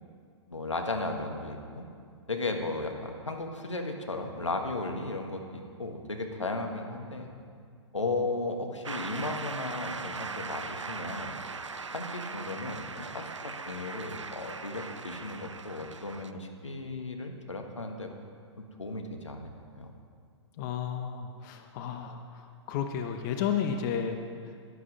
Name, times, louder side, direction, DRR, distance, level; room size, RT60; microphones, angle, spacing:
voice 1, 0.5-1.9 2.3-7.3 7.9-11.4 11.9-18.1 18.8-19.9, left 2 dB, 85° left, 3 dB, 1.5 m, -35 dB
Shout / Cheering / Applause, 8.8-16.3, right 4 dB, 90° right, 0.5 m, -39 dB
voice 2, 20.6-22.2 22.7-24.2, left 8 dB, 40° left, 5 dB, 1.0 m, -32 dB
11.0 x 11.0 x 5.3 m, 2.2 s
figure-of-eight pair, 110°, 15 cm